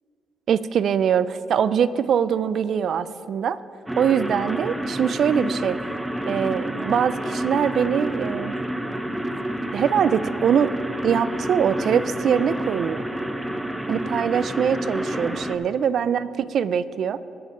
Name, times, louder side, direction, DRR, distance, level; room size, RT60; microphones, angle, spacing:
voice 1, 0.5-3.6 4.0-5.8 6.3-8.5 9.7-10.7 11.0-13.0 13.9-17.2, right 8 dB, 60° right, 16 dB, 0.3 m, -23 dB
sound 1, 3.9-15.6, right 1 dB, 5° right, 0.6 m, -29 dB
19.0 x 7.4 x 3.8 m, 2.8 s
cardioid pair, 90°, 0 cm